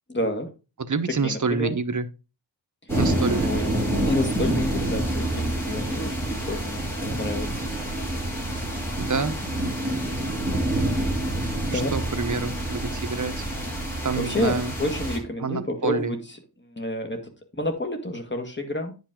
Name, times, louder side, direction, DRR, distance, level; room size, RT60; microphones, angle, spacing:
voice 1, 0.1-0.5 1.1-1.7 3.4-3.7 4.1-7.6 11.7-11.9 13.8-16.2 16.8-17.2 17.6-18.9, left 1 dB, 25° left, 2.0 m, -29 dB
voice 2, 0.8-2.1 3.0-3.6 9.0-9.3 11.7-13.5 14.0-14.7 15.4-16.2, right 4 dB, 40° right, 1.0 m, -27 dB
sound 1, 2.9-15.2, right 1 dB, 5° left, 4.2 m, -27 dB
9.8 x 5.4 x 3.7 m
wide cardioid pair, 85°, 45 cm